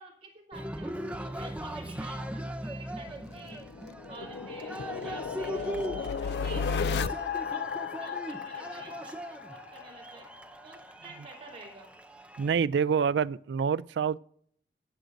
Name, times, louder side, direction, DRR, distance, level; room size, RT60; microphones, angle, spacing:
voice 1, 0.0-3.6 4.1-7.1 7.5-7.7 8.0-10.3 10.6-11.9, right 3 dB, 35° right, 3.2 m, -49 dB
Cheering, 0.5-12.5, equal, 5° right, 0.6 m, -39 dB
sound 1, 3.1-9.9, left 5 dB, 75° left, 0.4 m, -34 dB
voice 2, 12.4-14.2, right 6 dB, 85° right, 0.3 m, -26 dB
22.0 x 7.7 x 2.6 m
head